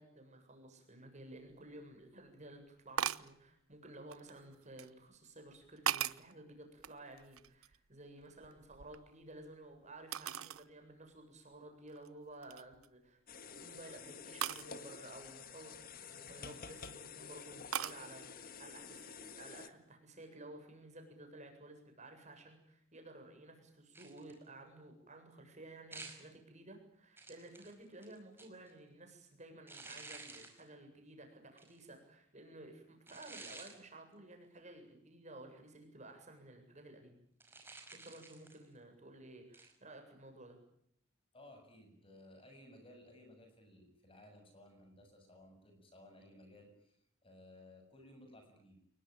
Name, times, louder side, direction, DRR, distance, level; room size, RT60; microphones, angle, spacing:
voice 1, 0.0-37.2 37.9-40.6, right 2 dB, 35° right, 4 dB, 7.7 m, -54 dB
sound 1, 1.5-1.6 3.0-3.3 4.1-4.9 5.5-6.3 6.8-7.9 8.2-9.5 10.1-10.7 11.1-11.2 11.9-12.1 12.4-12.9 14.4-14.7 16.4-16.9 17.7-18.0, right 9 dB, 80° right, 1.0 m, -39 dB
sound 2, 13.3-19.7, left 6 dB, 45° left, 1.8 m, -50 dB
sound 3, 23.9-24.4 25.9-26.3 27.2-28.7 29.7-30.6 31.6-31.8 33.1-33.8 37.4-38.7 39.5-39.7, right 3 dB, 10° right, 5.0 m, -52 dB
voice 2, 41.3-48.8, left 1 dB, 25° left, 5 dB, 7.4 m, -58 dB
29.5 x 20.5 x 9.0 m, 0.72 s
head